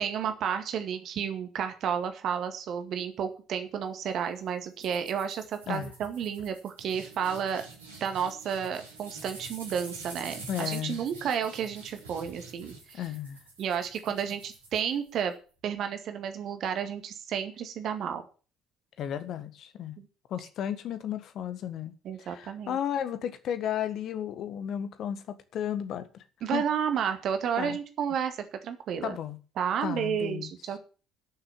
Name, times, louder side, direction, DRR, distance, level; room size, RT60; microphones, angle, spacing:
voice 1, 0.0-7.6 8.0-13.0 13.6-15.3 15.6-18.2 20.0-20.1 22.0-22.8 26.4-29.2 29.6-30.8, right 8 dB, 45° right, 2.0 m, -31 dB
sound 1, 4.8-15.3, right 3 dB, 80° right, 3.5 m, -47 dB
voice 2, 10.5-11.0 12.9-13.4 19.0-20.0 20.3-21.9 22.2-26.2 26.5-26.6 27.6-27.8 29.0-29.4 29.8-30.5, left 10 dB, 50° left, 1.5 m, -33 dB
12.5 x 6.9 x 6.8 m
figure-of-eight pair, 55°, 0 cm